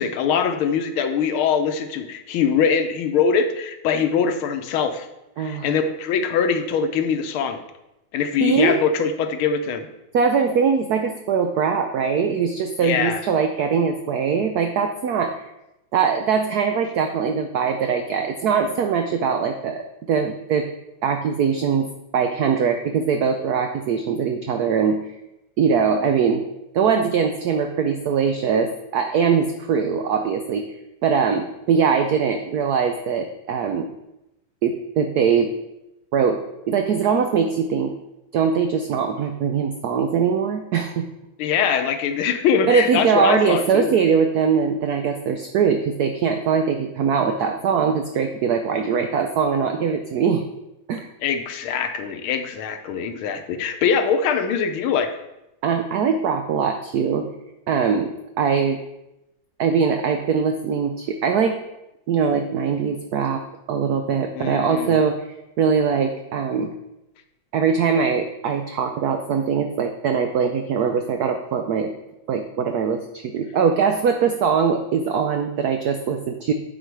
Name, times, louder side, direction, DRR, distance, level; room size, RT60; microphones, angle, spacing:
voice 1, 0.0-5.1 5.4-7.6 8.1-9.9 12.8-13.2 26.0-26.1 41.4-43.9 48.9-49.1 51.2-55.1 64.3-65.0, left 6 dB, 80° left, 8 dB, 1.6 m, -22 dB
voice 2, 5.4-5.7 8.4-8.8 10.1-15.4 15.9-20.7 21.0-21.9 22.1-25.0 25.6-26.4 26.7-30.6 31.0-33.9 34.6-35.5 36.1-36.4 36.7-37.9 38.3-41.0 42.7-50.4 50.9-51.1 55.6-57.3 57.7-58.8 59.6-61.6 62.1-63.4 63.7-65.3 65.6-66.7 67.5-71.9 72.3-76.5, right 6 dB, 85° right, 6 dB, 0.8 m, -21 dB
9.1 x 4.2 x 4.6 m, 0.90 s
omnidirectional pair, 2.3 m